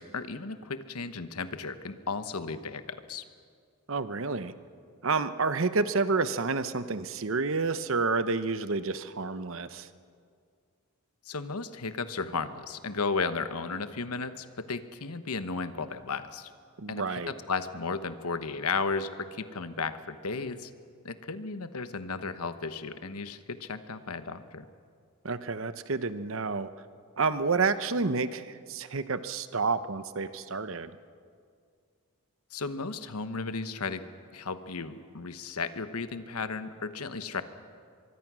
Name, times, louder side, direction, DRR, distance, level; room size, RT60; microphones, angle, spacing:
voice 1, 0.0-3.2 11.3-16.5 16.9-20.7 21.0-24.6 32.5-34.0 34.3-37.4, left 4 dB, 85° left, 11 dB, 1.1 m, -34 dB
voice 2, 3.9-4.5 5.0-9.9 16.8-17.3 25.2-26.7 27.2-30.9, right 4 dB, 60° right, 12 dB, 0.9 m, -29 dB
24.0 x 24.0 x 6.2 m, 2.2 s
head